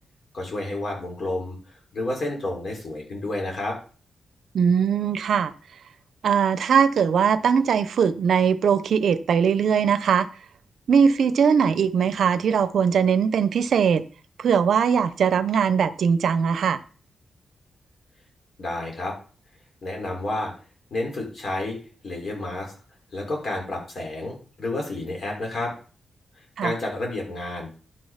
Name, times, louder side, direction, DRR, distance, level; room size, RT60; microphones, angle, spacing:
voice 1, 0.3-1.6 1.9-3.8 18.6-19.1 19.8-20.5 20.9-21.8 22.0-22.7 23.1-25.7 26.6-27.7, left 2 dB, 45° left, 0 dB, 5.6 m, -30 dB
voice 2, 4.5-5.5 6.2-10.3 10.9-14.0 14.4-16.8 26.6-26.7, right 7 dB, 70° right, 14 dB, 0.7 m, -20 dB
11.5 x 6.5 x 5.8 m, 0.38 s
wide cardioid pair, 125°, 0 cm